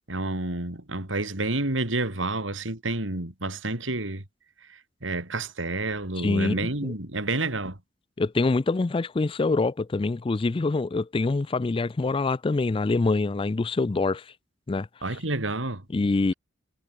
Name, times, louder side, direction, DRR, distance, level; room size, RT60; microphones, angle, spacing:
voice 1, 0.1-4.2 5.0-7.8 15.0-15.8, right 2 dB, 85° right, 3.9 m, -29 dB
voice 2, 6.2-6.9 8.2-14.2 14.7-14.9 15.9-16.3, left 3 dB, 30° left, 0.4 m, -25 dB
head